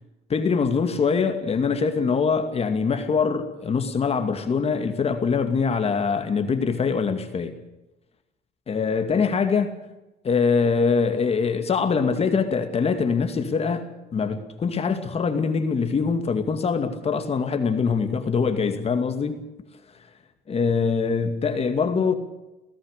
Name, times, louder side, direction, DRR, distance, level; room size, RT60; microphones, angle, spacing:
voice 1, 0.3-7.6 8.7-9.7 10.2-19.4 20.5-22.1, left 5 dB, 35° left, 2.3 m, -23 dB
27.5 x 17.5 x 6.7 m
cardioid pair, 110°, 17 cm